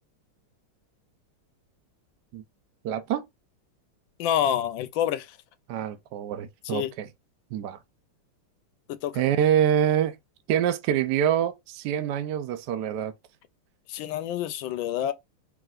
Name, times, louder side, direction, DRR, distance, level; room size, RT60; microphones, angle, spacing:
voice 1, 2.8-3.2 5.7-7.1 7.5-7.8 9.1-10.2 10.5-13.1, right 10 dB, 70° right, 1.0 m, -25 dB
voice 2, 4.2-5.3 6.6-6.9 8.9-9.2 13.9-15.1, left 10 dB, 75° left, 1.2 m, -27 dB
4.8 x 3.3 x 2.4 m
omnidirectional pair, 2.3 m